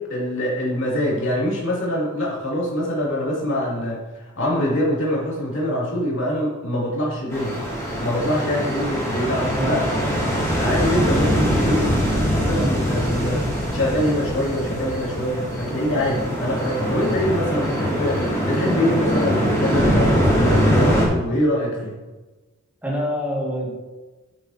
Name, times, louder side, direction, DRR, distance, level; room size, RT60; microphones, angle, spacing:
voice 1, 0.0-7.6 8.0-9.8 10.6-12.0 12.3-21.9, left 1 dB, 65° left, -5 dB, 2.8 m, -24 dB
sound 1, 7.3-21.1, equal, 15° left, 2.5 m, -22 dB
voice 2, 9.5-10.0 22.8-23.7, equal, 10° right, -4 dB, 2.0 m, -26 dB
9.1 x 7.8 x 2.9 m, 1.2 s
head